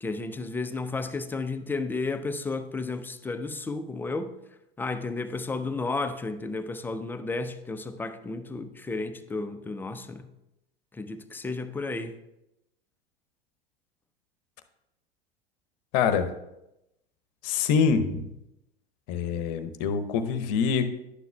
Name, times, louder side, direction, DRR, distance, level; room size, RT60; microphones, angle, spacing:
voice 1, 0.0-4.3 4.8-10.2 11.0-12.1, left 3 dB, 5° left, 9 dB, 0.4 m, -32 dB
voice 2, 15.9-16.3 17.4-18.3 19.1-20.9, left 6 dB, 45° left, 10 dB, 0.8 m, -25 dB
11.5 x 9.2 x 2.2 m, 0.89 s
figure-of-eight pair, 80°, 30 cm